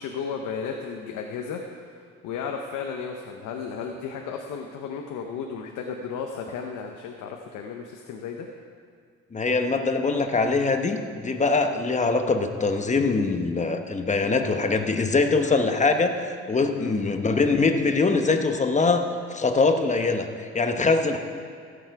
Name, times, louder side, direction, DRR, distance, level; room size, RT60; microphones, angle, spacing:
voice 1, 0.0-8.5 15.4-15.6 16.8-16.9, left 6 dB, 90° left, 3 dB, 0.8 m, -34 dB
voice 2, 9.3-16.2 16.5-19.0 19.3-21.2, left 3 dB, 25° left, 6 dB, 1.0 m, -23 dB
15.5 x 7.1 x 4.7 m, 2.3 s
cardioid pair, 90°, 30 cm